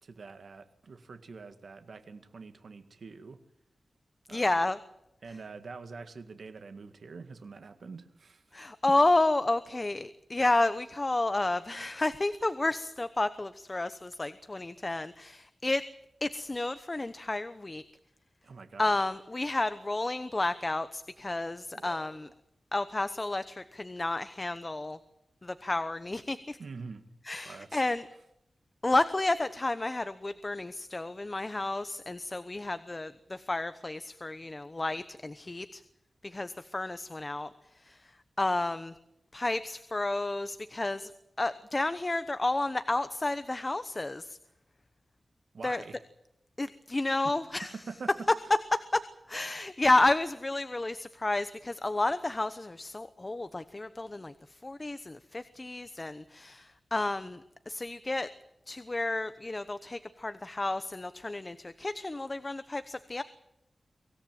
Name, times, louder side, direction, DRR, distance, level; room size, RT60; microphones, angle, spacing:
voice 1, 0.0-3.4 4.3-4.5 5.2-8.4 8.9-9.0 18.4-19.1 21.7-22.3 26.6-27.1 27.4-27.8 45.5-46.0 47.9-48.3, right 4 dB, 75° right, 8 dB, 1.9 m, -45 dB
voice 2, 4.3-4.8 8.5-15.8 16.2-17.8 18.8-22.3 22.7-25.0 25.4-26.6 27.3-28.0 28.8-35.8 36.2-37.5 37.8-38.0 38.4-38.9 39.3-41.1 41.4-44.4 45.6-45.8 46.6-47.7 48.7-49.0 49.3-54.3 54.6-58.3 58.7-63.2, left 2 dB, 25° left, 12 dB, 0.9 m, -31 dB
24.0 x 17.0 x 9.2 m, 0.85 s
wide cardioid pair, 115°, 0 cm